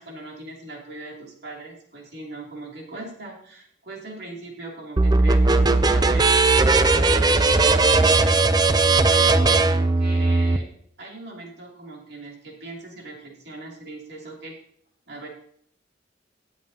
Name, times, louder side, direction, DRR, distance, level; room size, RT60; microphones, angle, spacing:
voice 1, 0.0-8.6 9.1-10.7 11.0-14.6 15.1-15.3, right 2 dB, 55° right, -1 dB, 2.9 m, -39 dB
sound 1, 5.0-10.6, right 3 dB, 20° right, 0.4 m, -18 dB
17.5 x 7.4 x 2.8 m, 0.65 s
head